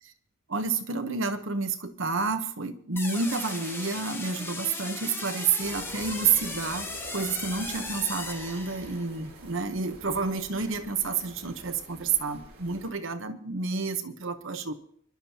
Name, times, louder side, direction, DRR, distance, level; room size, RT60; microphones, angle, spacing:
voice 1, 0.5-6.9 7.1-14.7, right 5 dB, 60° right, 8 dB, 1.1 m, -29 dB
sound 1, 3.0-9.1, left 2 dB, 10° left, 1.0 m, -37 dB
sound 2, 5.6-12.9, right 1 dB, 90° right, 3.3 m, -47 dB
25.0 x 12.0 x 2.9 m, 0.63 s
head